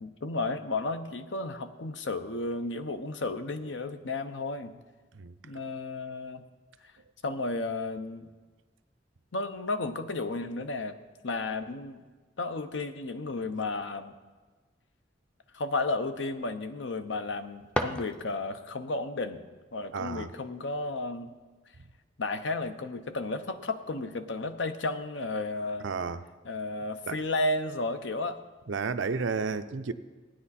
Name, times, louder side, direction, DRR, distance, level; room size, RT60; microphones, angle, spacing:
voice 1, 0.0-4.8 5.4-6.5 7.2-8.3 9.3-11.0 11.2-12.0 12.4-14.1 15.5-19.4 19.7-21.3 22.2-25.9 26.4-28.4, left 2 dB, 75° left, 9 dB, 0.8 m, -33 dB
sound 1, 17.2-18.7, equal, 5° left, 0.5 m, -35 dB
voice 2, 19.9-20.3 25.8-26.2 27.1-27.2 28.7-29.9, right 4 dB, 90° right, 10 dB, 0.6 m, -32 dB
15.5 x 9.7 x 4.2 m, 1.3 s
head